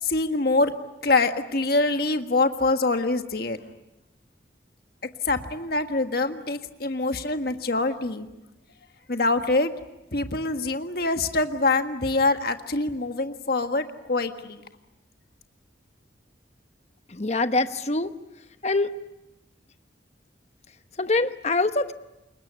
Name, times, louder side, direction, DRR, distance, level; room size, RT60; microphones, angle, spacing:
voice 1, 0.0-0.7 1.0-3.6 5.2-8.3 9.1-9.7 10.1-14.6, left 3 dB, 55° left, 7 dB, 1.6 m, -24 dB
voice 2, 17.1-18.1 18.6-18.9 21.0-21.9, left 2 dB, 35° left, 10 dB, 1.0 m, -24 dB
27.0 x 22.5 x 9.7 m, 0.94 s
head